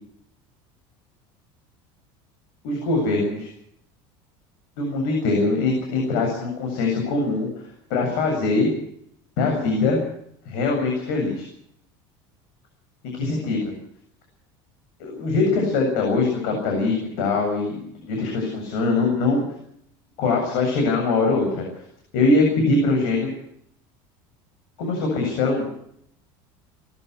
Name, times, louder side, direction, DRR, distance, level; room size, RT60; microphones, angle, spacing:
voice 1, 2.6-3.5 4.8-7.5 7.9-8.7 9.4-10.0 10.5-11.5 13.0-13.7 15.0-19.4 20.2-21.6 22.1-23.3 24.8-25.6, left 3 dB, 70° left, 1 dB, 7.8 m, -22 dB
20.5 x 15.0 x 9.8 m, 0.72 s
cardioid pair, 175°, 12 cm